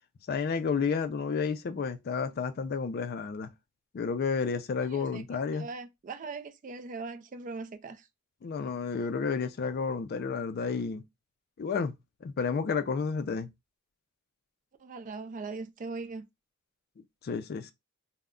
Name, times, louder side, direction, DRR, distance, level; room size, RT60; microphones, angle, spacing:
voice 1, 0.3-3.5 3.9-5.7 8.4-11.0 11.6-11.9 12.2-13.5 17.2-17.7, left 5 dB, 45° left, 0.3 m, -31 dB
voice 2, 4.8-5.3 5.5-8.1 14.8-16.2, right 4 dB, 35° right, 0.3 m, -40 dB
2.2 x 2.1 x 3.6 m
head